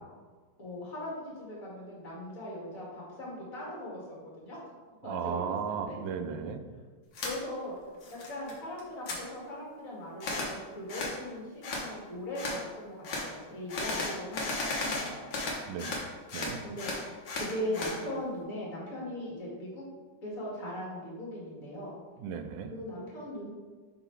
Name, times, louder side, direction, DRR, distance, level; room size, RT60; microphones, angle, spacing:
voice 1, 0.6-4.6 5.0-6.0 7.2-7.7 8.1-15.3 16.6-19.8 20.2-22.0 22.7-23.5, left 1 dB, 50° left, -5 dB, 2.2 m, -39 dB
voice 2, 5.0-6.6 15.7-15.9 16.3-16.6 22.2-22.7, right 7 dB, 90° right, 8 dB, 1.3 m, -35 dB
sound 1, 7.1-7.3 7.8-8.5 8.8-9.2 10.2-10.5 10.9-11.2 11.6-11.9 12.3-12.6 13.0-13.3 13.7-16.0 16.3-18.0, left 2 dB, 75° left, 1.7 m, -34 dB
5.6 x 3.9 x 4.4 m, 1.4 s
omnidirectional pair, 2.0 m